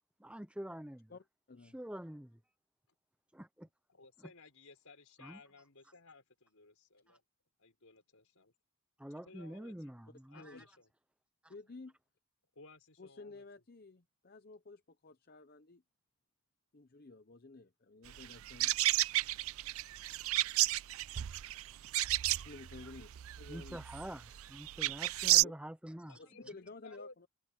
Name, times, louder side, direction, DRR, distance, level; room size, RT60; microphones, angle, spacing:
voice 1, 0.2-1.2 1.6-2.4 3.3-3.7 4.2-4.3 5.2-5.4 7.1-7.2 9.0-10.7 11.4-11.5 23.5-26.6, equal, 5° right, 0.6 m, -47 dB
voice 2, 1.1-1.8 10.3-10.6 11.5-12.0 13.0-15.8 16.7-18.7 22.3-23.8 25.4-25.5 26.2-27.3, left 3 dB, 45° left, 0.7 m, -52 dB
voice 3, 3.9-7.2 7.6-8.5 9.1-9.9 10.3-10.9 12.5-13.4 26.1-27.1, left 3 dB, 70° left, 5.0 m, -58 dB
sound 1, 18.1-25.4, right 16 dB, 70° right, 0.4 m, -32 dB
head